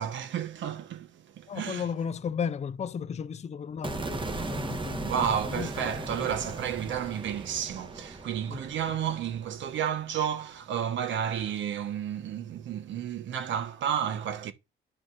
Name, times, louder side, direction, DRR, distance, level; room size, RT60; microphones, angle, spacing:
voice 1, 0.0-1.8 5.0-14.5, right 9 dB, 70° right, 1.3 m, -31 dB
voice 2, 1.5-6.3 8.5-8.6, left 7 dB, 35° left, 0.5 m, -35 dB
sound 1, 3.8-10.1, right 3 dB, 25° right, 1.6 m, -38 dB
11.5 x 5.3 x 2.6 m
cardioid pair, 90°, 20 cm